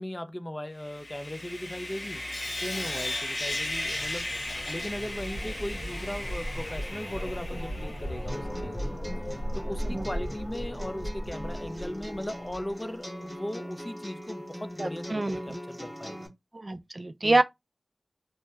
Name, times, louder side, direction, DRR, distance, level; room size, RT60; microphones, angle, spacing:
voice 1, 0.0-2.2 2.6-4.3 4.7-9.0 9.5-16.3 17.2-17.4, left 1 dB, 25° left, 0.4 m, -38 dB
Sawing, 0.8-8.2, left 1 dB, 60° left, 0.7 m, -36 dB
sound 1, 3.7-12.7, equal, 75° left, 1.4 m, -37 dB
sound 2, 8.3-16.3, equal, 5° left, 0.8 m, -41 dB
voice 2, 14.8-15.6 16.5-17.4, right 2 dB, 45° right, 0.3 m, -27 dB
2.7 x 2.1 x 3.2 m
wide cardioid pair, 40°, 0 cm